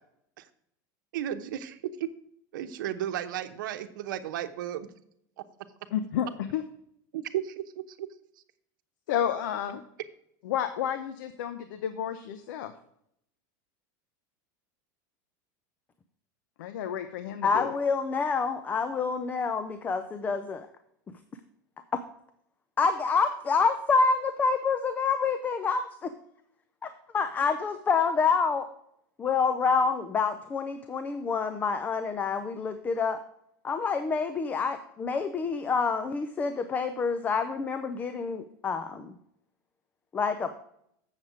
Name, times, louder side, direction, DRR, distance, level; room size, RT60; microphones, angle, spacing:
voice 1, 1.1-2.1 2.5-4.9 5.4-5.5 7.1-8.1, right 11 dB, 85° right, 10 dB, 0.9 m, -34 dB
voice 2, 5.9-6.6 9.1-9.8 10.4-12.7 16.6-17.7, left 9 dB, 80° left, 9 dB, 0.8 m, -31 dB
voice 3, 17.4-20.7 21.9-22.0 22.8-26.1 26.8-28.7 29.2-33.2 33.6-39.2 40.1-40.6, left 5 dB, 15° left, 10 dB, 0.5 m, -27 dB
7.8 x 7.2 x 4.9 m, 0.73 s
supercardioid pair, 155°, 10 cm